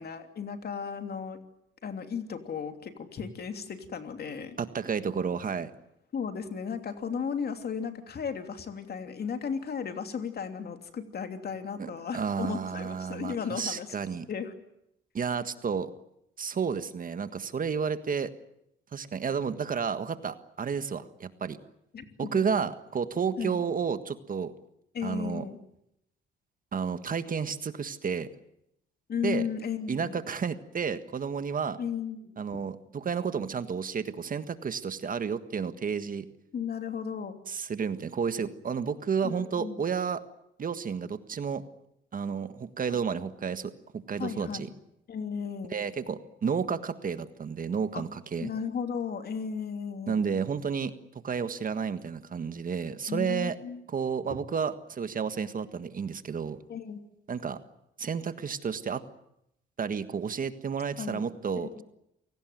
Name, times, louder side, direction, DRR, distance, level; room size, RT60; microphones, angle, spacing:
voice 1, 0.0-1.4 1.8-4.6 6.1-13.9 14.3-14.5 21.9-22.4 23.4-23.6 24.9-25.6 29.1-30.2 31.8-32.6 36.5-37.4 39.2-39.8 42.9-43.0 44.2-44.7 45.1-45.8 47.9-48.0 48.4-50.3 53.1-53.8 56.7-57.0 61.0-61.3 61.5-61.8, left 6 dB, 50° left, 7 dB, 3.0 m, -35 dB
voice 2, 4.6-5.7 11.8-14.3 15.1-15.9 16.4-18.3 18.9-21.6 22.2-24.5 25.0-25.4 26.7-28.3 29.2-29.5 29.9-31.8 32.4-36.3 37.5-40.2 40.6-41.6 42.1-43.7 44.1-44.7 45.7-48.5 50.1-50.9 51.2-53.6 53.9-56.6 57.3-57.6 58.0-59.0 59.8-61.8, right 6 dB, 45° right, 11 dB, 1.6 m, -31 dB
28.0 x 18.0 x 9.4 m, 0.80 s
cardioid pair, 90°, 20 cm